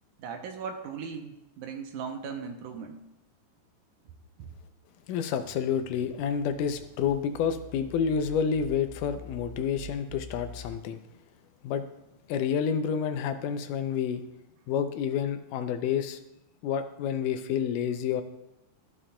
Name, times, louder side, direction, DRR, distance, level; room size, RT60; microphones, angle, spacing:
voice 1, 0.2-3.0 4.4-4.5, right 6 dB, 75° right, 5 dB, 2.1 m, -38 dB
voice 2, 5.1-11.0 11.6-11.9 12.3-14.2 14.7-16.2 16.6-18.2, left 7 dB, 80° left, 8 dB, 2.2 m, -29 dB
sound 1, 5.4-10.8, right 1 dB, 60° right, 1.7 m, -46 dB
14.0 x 7.2 x 2.2 m, 0.89 s
omnidirectional pair, 3.8 m